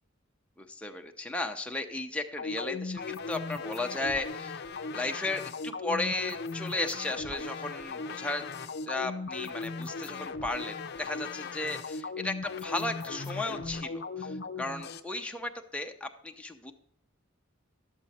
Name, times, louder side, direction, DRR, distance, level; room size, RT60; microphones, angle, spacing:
voice 1, 0.6-4.6 4.9-8.4 8.8-16.7, left 2 dB, 5° left, 3 dB, 0.7 m, -35 dB
sound 1, 2.4-15.0, left 4 dB, 55° left, 0.6 m, -38 dB
11.5 x 7.7 x 4.2 m, 0.77 s
head